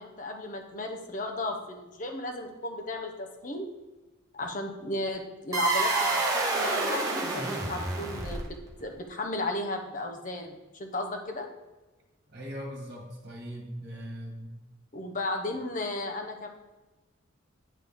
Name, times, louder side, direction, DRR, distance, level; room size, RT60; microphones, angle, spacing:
voice 1, 0.0-3.7 4.3-11.5 14.9-16.5, left 2 dB, 40° left, 3 dB, 0.8 m, -34 dB
sound 1, 5.5-8.7, right 3 dB, 15° right, 1.1 m, -28 dB
voice 2, 12.3-14.5, equal, 50° right, 0 dB, 1.7 m, -40 dB
9.3 x 3.7 x 3.6 m, 1.1 s
head